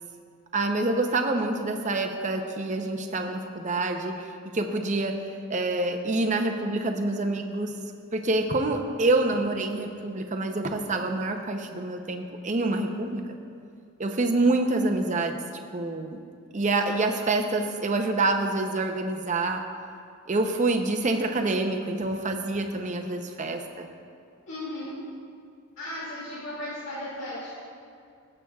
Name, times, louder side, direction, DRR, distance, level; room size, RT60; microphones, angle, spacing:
voice 1, 0.5-7.7 8.1-13.4 14.0-15.4 15.7-16.2 16.5-19.6 20.3-23.9, right 2 dB, 35° right, 4 dB, 0.6 m, -27 dB
voice 2, 24.5-24.9 25.8-27.5, left 1 dB, 55° left, -8 dB, 2.4 m, -35 dB
19.0 x 7.8 x 2.3 m, 2.3 s
head